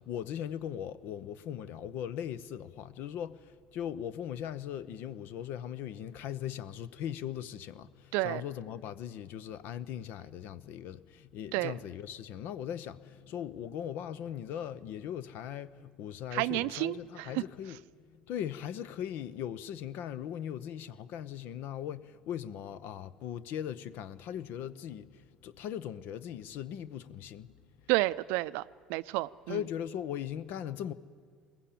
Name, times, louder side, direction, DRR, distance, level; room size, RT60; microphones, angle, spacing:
voice 1, 0.0-17.8 18.1-27.5 29.5-30.9, left 10 dB, 60° left, 0.8 m, -39 dB
voice 2, 16.3-17.4 27.9-28.6 28.9-29.6, right 20 dB, 65° right, 0.5 m, -30 dB
21.5 x 19.0 x 8.5 m
hypercardioid pair, 60°, 4 cm